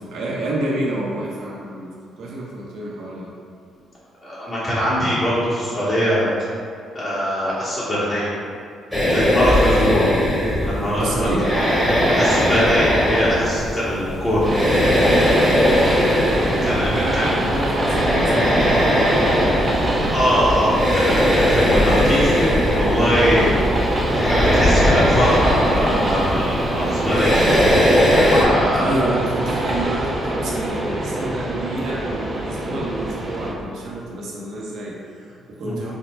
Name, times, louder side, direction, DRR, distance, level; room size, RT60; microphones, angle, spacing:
voice 1, 0.0-1.9 2.2-3.3 9.8-9.9 11.0-11.4 15.3-16.0 16.9-18.9 27.5-35.9, right 2 dB, 70° right, -4 dB, 0.8 m, -29 dB
voice 2, 4.2-6.3 6.9-8.3 9.1-10.1 10.6-11.3 12.1-14.4 16.3-17.3 20.1-23.5 24.1-27.5 28.3-29.0 35.6-35.8, equal, 40° left, -10 dB, 1.1 m, -22 dB
sound 1, 8.9-28.4, left 1 dB, 10° left, 1.0 m, -20 dB
Train, 14.4-33.5, right 1 dB, 30° right, 0.6 m, -23 dB
3.7 x 2.1 x 4.3 m, 2.3 s
supercardioid pair, 70°, 0 cm